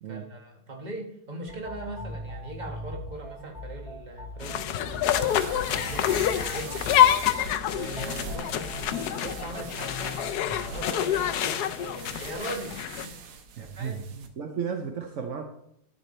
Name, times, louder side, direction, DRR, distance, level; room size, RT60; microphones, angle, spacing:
voice 1, 0.1-7.1 7.7-10.2 10.7-13.3 13.6-14.0, right 2 dB, 25° right, 3 dB, 1.4 m, -40 dB
sound 1, 1.5-11.4, left 1 dB, 15° left, 3.0 m, -41 dB
sound 2, 4.4-13.1, left 11 dB, 85° left, 0.8 m, -27 dB
sound 3, 4.8-14.3, right 5 dB, 90° right, 1.9 m, -43 dB
voice 2, 13.6-15.4, right 6 dB, 65° right, 5 dB, 0.7 m, -34 dB
12.5 x 7.0 x 4.3 m, 0.73 s
omnidirectional pair, 2.3 m